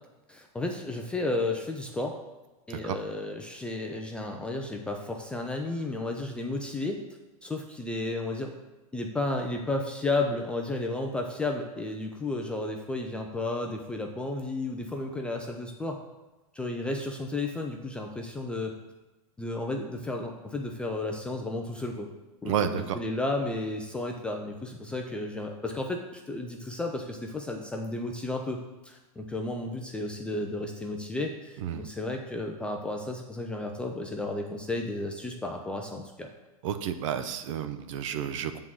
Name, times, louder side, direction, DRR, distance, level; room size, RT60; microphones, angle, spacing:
voice 1, 0.3-2.2 2.7-7.0 7.4-8.6 8.9-16.0 16.5-18.8 19.4-22.1 22.4-36.3, left 2 dB, 5° left, 2 dB, 0.3 m, -33 dB
voice 2, 22.4-23.0 31.6-31.8 36.6-38.6, right 9 dB, 55° right, 10 dB, 0.7 m, -31 dB
8.0 x 3.7 x 6.1 m, 1.1 s
supercardioid pair, 160°, 19 cm